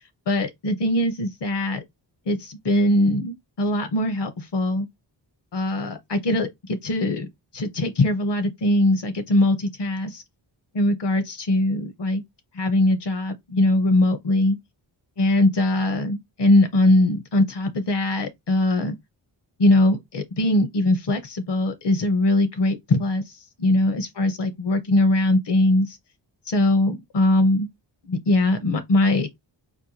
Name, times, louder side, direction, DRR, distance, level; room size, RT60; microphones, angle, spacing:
voice 1, 0.3-1.8 2.3-4.9 5.5-7.3 7.5-10.2 10.7-12.2 12.5-14.6 15.2-18.9 19.6-23.2 23.6-26.0 26.5-27.7 28.1-29.5, left 1 dB, 60° left, 0.8 m, -21 dB
4.4 x 2.1 x 2.7 m
wide cardioid pair, 130°, 46 cm